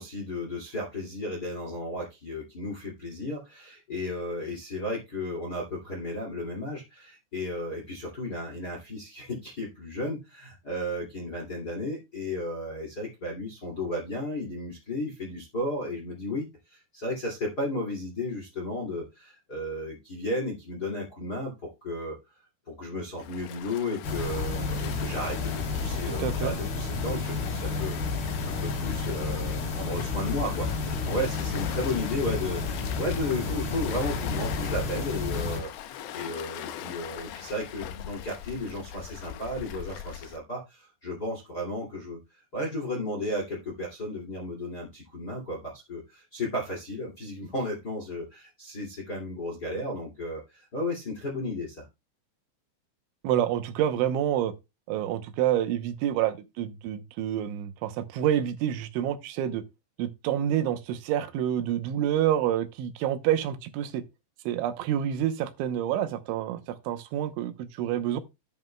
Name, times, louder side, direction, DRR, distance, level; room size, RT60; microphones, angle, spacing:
voice 1, 0.0-22.2 22.7-51.9, left 1 dB, 30° left, 1.9 m, -34 dB
Waves surf, 23.2-40.4, left 11 dB, 85° left, 2.2 m, -42 dB
sound 1, 24.0-35.6, left 4 dB, 55° left, 4.2 m, -31 dB
voice 2, 26.1-26.5 53.2-54.5 54.9-59.6 60.0-64.0 64.5-68.2, right 11 dB, 80° right, 3.2 m, -28 dB
11.5 x 10.5 x 2.2 m
omnidirectional pair, 5.5 m